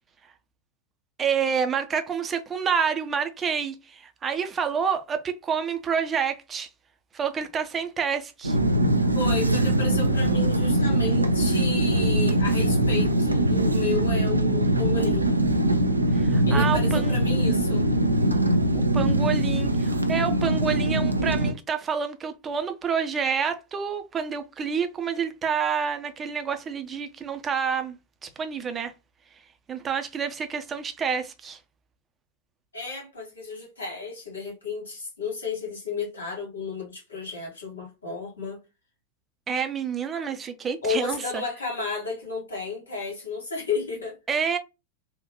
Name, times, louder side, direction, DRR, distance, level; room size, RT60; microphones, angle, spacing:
voice 1, 1.2-6.7 7.1-8.6 16.1-17.2 18.7-28.0 28.2-28.9 29.7-31.6 39.5-41.4 44.3-44.6, right 6 dB, 20° right, 0.7 m, -28 dB
sound 1, 8.4-21.5, right 1 dB, 80° right, 0.4 m, -22 dB
voice 2, 9.1-15.2 16.5-17.9 32.7-38.6 40.8-44.2, left 4 dB, 75° left, 1.9 m, -33 dB
3.7 x 2.4 x 2.9 m
figure-of-eight pair, 90°, 0 cm